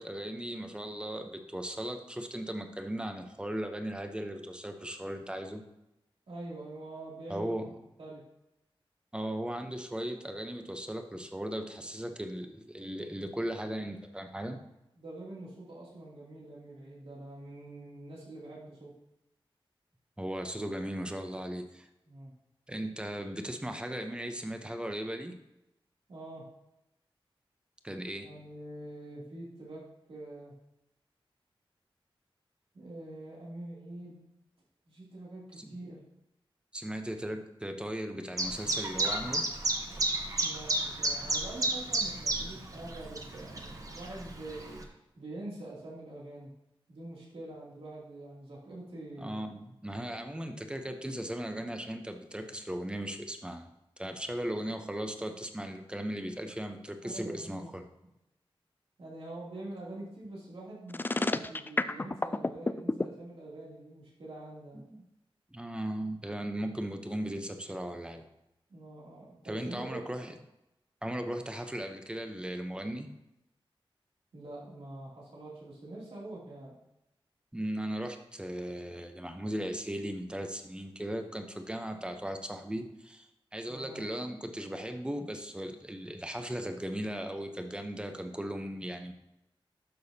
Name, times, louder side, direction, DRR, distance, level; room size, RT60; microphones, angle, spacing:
voice 1, 0.0-5.6 7.3-7.7 9.1-14.6 20.2-21.9 22.7-25.3 27.8-28.3 35.6-35.7 36.7-39.4 49.2-53.7 54.0-57.8 64.9-65.0 65.5-68.2 69.5-70.3 71.0-73.1 77.5-83.3 83.5-89.1, right 1 dB, 10° right, 6 dB, 0.8 m, -37 dB
voice 2, 6.3-8.2 15.0-18.9 22.1-22.3 26.1-26.5 28.2-30.5 32.7-34.2 34.9-36.0 40.4-44.8 45.1-46.5 46.9-49.5 57.0-57.7 59.0-64.8 68.7-70.0 74.3-76.8 83.7-84.0, right 1 dB, 85° right, -6 dB, 2.8 m, -45 dB
Chirp tweet, 38.4-44.8, right 2 dB, 40° right, 1.0 m, -32 dB
sound 1, 60.9-63.1, left 2 dB, 20° left, 0.3 m, -29 dB
12.0 x 6.2 x 2.8 m, 0.89 s
wide cardioid pair, 110°, 9 cm